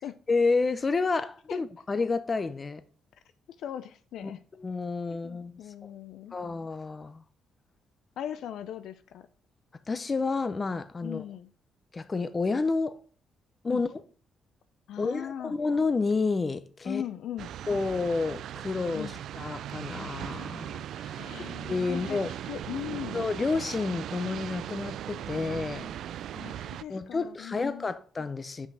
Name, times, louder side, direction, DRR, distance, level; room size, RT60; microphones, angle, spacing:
voice 1, 0.3-2.8 4.2-4.3 4.6-5.5 6.3-7.2 9.9-11.2 11.9-13.0 13.6-14.0 15.0-17.0 17.7-22.3 23.1-25.9 26.9-28.7, left 4 dB, 30° left, 0.7 m, -30 dB
voice 2, 3.6-4.4 5.2-6.4 8.2-9.3 11.0-11.5 13.7-13.8 14.9-15.6 16.8-17.5 18.9-19.1 21.1-22.2 22.5-23.2 26.3-27.9, left 10 dB, 75° left, 0.5 m, -39 dB
sound 1, 17.4-26.8, right 11 dB, 75° right, 0.3 m, -38 dB
5.9 x 5.4 x 6.1 m
cardioid pair, 90°, 0 cm